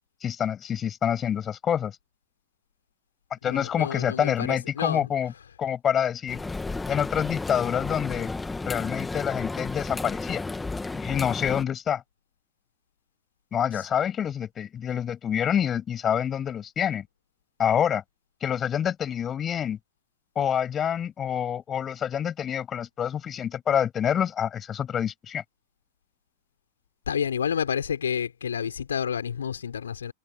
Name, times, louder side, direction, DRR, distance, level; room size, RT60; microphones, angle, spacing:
voice 1, 0.2-2.0 3.3-5.3 5.6-6.4 6.9-8.3 8.7-10.4 10.9-12.0 13.5-17.1 17.6-18.0 18.4-19.8 20.4-25.4, left 9 dB, 25° left, 7.2 m, -27 dB
voice 2, 3.4-5.1 13.7-13.8 27.1-30.1, left 7 dB, 70° left, 3.9 m, -29 dB
sound 1, 6.3-11.6, left 3 dB, 10° left, 2.4 m, -33 dB
figure-of-eight pair, 90°, 0 cm